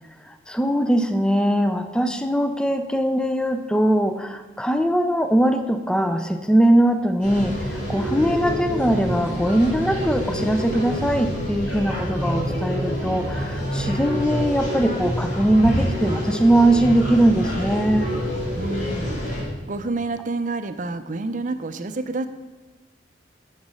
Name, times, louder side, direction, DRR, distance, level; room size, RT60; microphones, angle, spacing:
voice 1, 0.3-18.1, right 1 dB, 5° left, 8 dB, 0.5 m, -21 dB
sound 1, 7.2-19.4, equal, 60° left, 3.1 m, -27 dB
voice 2, 18.6-22.3, right 3 dB, 45° right, 10 dB, 0.5 m, -29 dB
7.9 x 7.4 x 5.5 m, 1.2 s
head